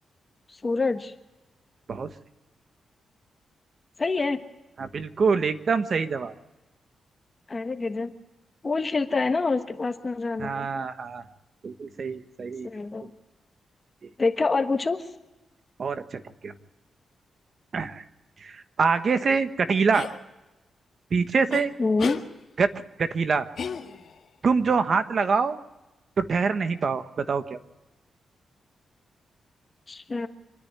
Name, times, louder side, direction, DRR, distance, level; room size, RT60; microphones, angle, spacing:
voice 1, 0.5-1.1 4.0-4.4 7.5-8.1 8.6-10.7 12.6-13.0 14.2-15.1 21.8-22.2 29.9-30.3, left 3 dB, 30° left, 7 dB, 1.3 m, -26 dB
voice 2, 4.8-6.3 10.4-11.2 11.6-12.7 15.8-16.5 17.7-18.0 18.4-20.1 21.1-21.7 22.6-22.7 23.0-23.5 24.4-25.6 26.2-27.6, right 5 dB, 50° right, 10 dB, 1.3 m, -25 dB
sound 1, 19.9-20.2 21.5-21.6 22.0-22.2 23.6-24.2, left 6 dB, 60° left, 1.7 m, -33 dB
26.5 x 10.0 x 9.7 m, 1.0 s
cardioid pair, 90°, 0 cm